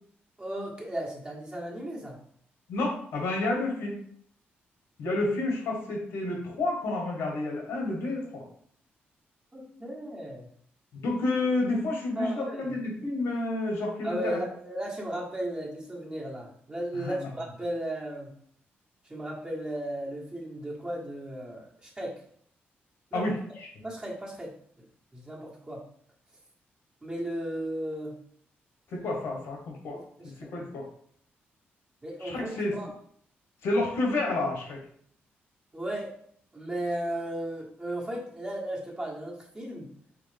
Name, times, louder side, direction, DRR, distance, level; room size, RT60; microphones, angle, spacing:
voice 1, 0.4-2.2 9.5-10.5 12.2-12.8 14.0-18.3 19.0-22.2 23.1-23.2 23.8-24.5 25.1-25.8 27.0-28.1 30.2-30.5 32.0-32.9 35.7-36.1 36.5-39.9, right 1 dB, 20° right, -2 dB, 1.4 m, -35 dB
voice 2, 2.7-4.0 5.0-8.4 10.9-14.4 16.9-17.3 23.1-23.7 28.9-30.0 30.4-30.8 32.2-32.8 33.6-34.8, left 2 dB, 85° left, 0 dB, 1.4 m, -30 dB
4.4 x 3.3 x 3.4 m, 0.62 s
cardioid pair, 95°, 4 cm